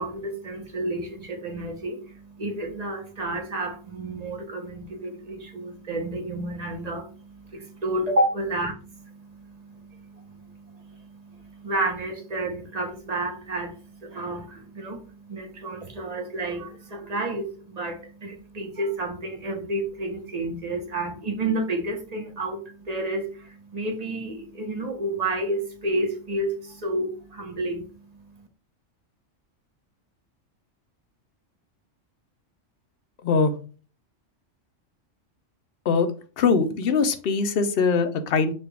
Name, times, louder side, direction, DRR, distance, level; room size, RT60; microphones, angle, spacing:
voice 1, 0.0-28.5, right 1 dB, 35° right, 0.8 m, -31 dB
voice 2, 33.2-33.5 35.9-36.1 36.4-38.5, left 5 dB, 55° left, 0.8 m, -22 dB
6.6 x 2.4 x 3.4 m
omnidirectional pair, 1.3 m